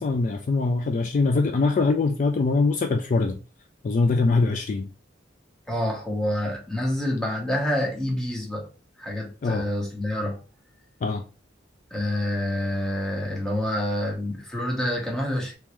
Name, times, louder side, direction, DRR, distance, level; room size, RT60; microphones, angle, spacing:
voice 1, 0.0-3.4 3.8-4.9 9.4-9.7 11.0-11.2, left 3 dB, 40° left, 0.3 m, -23 dB
voice 2, 5.7-8.7 9.0-10.4 11.9-15.5, left 1 dB, 5° left, 1.0 m, -27 dB
3.6 x 3.0 x 3.1 m
head